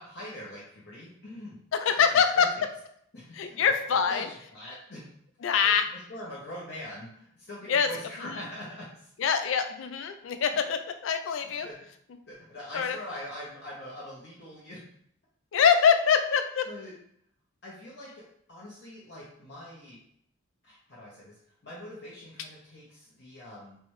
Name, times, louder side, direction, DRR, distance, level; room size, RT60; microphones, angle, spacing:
voice 1, 0.0-1.6 2.3-2.7 3.1-3.7 4.1-5.0 5.4-9.1 11.6-11.7 12.3-14.8 16.7-16.9 17.6-18.2 18.5-20.0 20.6-23.8, left 1 dB, 55° left, -7 dB, 0.8 m, -43 dB
voice 2, 1.7-2.5 3.3-4.3 5.4-5.8 7.7-7.9 8.2-8.3 9.2-11.7 12.7-13.0 15.5-16.7, left 7 dB, 70° left, 7 dB, 0.4 m, -24 dB
3.3 x 3.2 x 3.1 m, 0.68 s
head